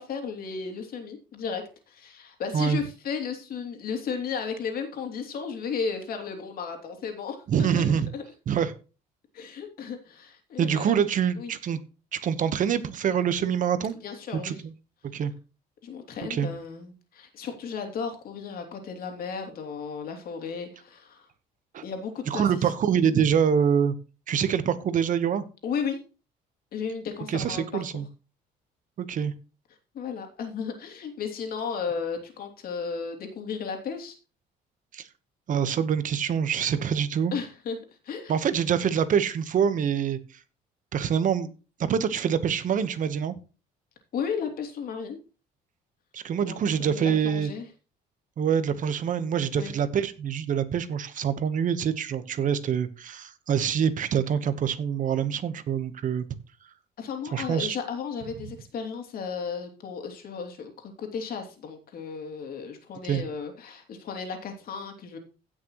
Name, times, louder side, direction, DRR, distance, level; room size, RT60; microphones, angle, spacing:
voice 1, 0.0-8.2 9.3-11.0 11.4-11.5 14.0-14.6 15.8-21.2 21.8-22.5 23.1-23.2 25.6-26.0 26.7-27.8 29.9-34.2 37.3-37.8 38.0-38.3 44.1-45.2 46.5-47.7 49.5-49.7 57.0-60.7 61.0-65.2, left 6 dB, 60° left, 4 dB, 2.9 m, -34 dB
voice 2, 7.5-8.1 8.5-8.7 10.6-11.8 12.1-13.9 14.3-14.7 15.1-15.3 16.2-16.5 21.7-21.8 22.3-24.0 24.3-25.4 27.3-28.1 29.0-29.3 34.9-35.1 35.5-37.3 38.3-40.2 40.9-41.5 41.8-43.3 46.1-47.5 48.4-56.3 57.3-57.8 63.0-63.2, right 8 dB, 50° right, 13 dB, 1.1 m, -25 dB
16.0 x 6.4 x 3.0 m, 0.33 s
cardioid pair, 110°, 17 cm